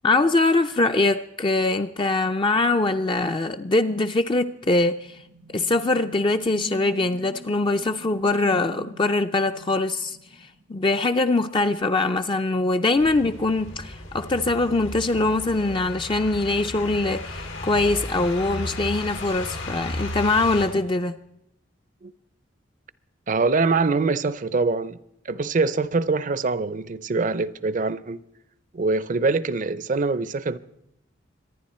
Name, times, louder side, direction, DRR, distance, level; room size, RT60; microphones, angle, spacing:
voice 1, 0.0-5.2 5.5-10.2 10.7-21.1, left 2 dB, 25° left, 0.5 m, -23 dB
sound 1, 4.5-11.0, right 1 dB, 80° right, 1.5 m, -45 dB
sound 2, 13.0-20.7, left 2 dB, 90° left, 2.5 m, -34 dB
voice 2, 23.3-25.0 25.3-28.2 28.7-30.6, right 3 dB, 45° right, 0.6 m, -24 dB
25.5 x 9.9 x 4.3 m
head